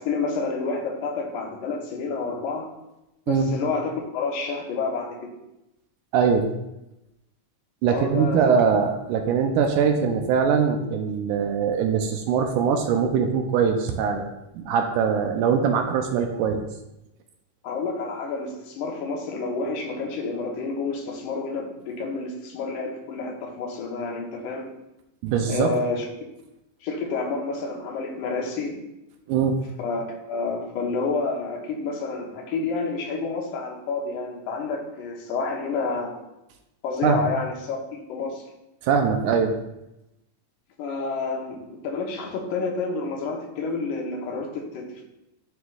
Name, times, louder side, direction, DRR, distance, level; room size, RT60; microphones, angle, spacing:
voice 1, 0.0-2.7 3.3-5.3 7.9-8.4 17.6-24.7 25.5-26.1 26.8-28.8 29.8-36.2 36.8-38.5 40.8-45.1, left 4 dB, 75° left, 0 dB, 2.5 m, -29 dB
voice 2, 6.1-6.5 7.8-14.3 14.6-16.7 25.2-25.7 29.3-29.6 37.0-37.2 38.8-39.5, right 6 dB, 80° right, 4 dB, 2.0 m, -22 dB
11.0 x 4.4 x 2.3 m, 0.91 s
omnidirectional pair, 3.8 m